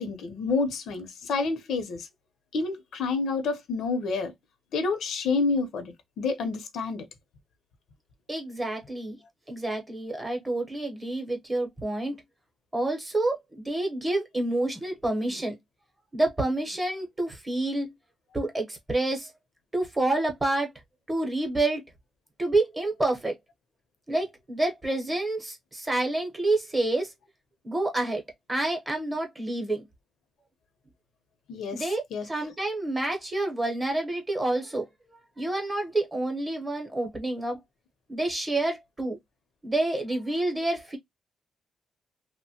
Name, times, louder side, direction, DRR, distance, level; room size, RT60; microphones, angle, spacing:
voice 1, 0.0-2.1 2.5-4.3 4.7-7.1 31.5-31.8 32.1-32.3, left 4 dB, 85° left, 0.6 m, -29 dB
voice 2, 8.3-9.2 9.5-12.2 12.7-15.6 16.1-17.9 18.3-19.3 19.7-20.7 21.1-21.8 22.4-23.4 24.1-27.1 27.6-28.2 28.5-29.8 31.7-37.6 38.1-39.2 39.6-41.0, right 2 dB, 15° right, 0.8 m, -28 dB
3.0 x 2.1 x 2.7 m
wide cardioid pair, 170°, 0 cm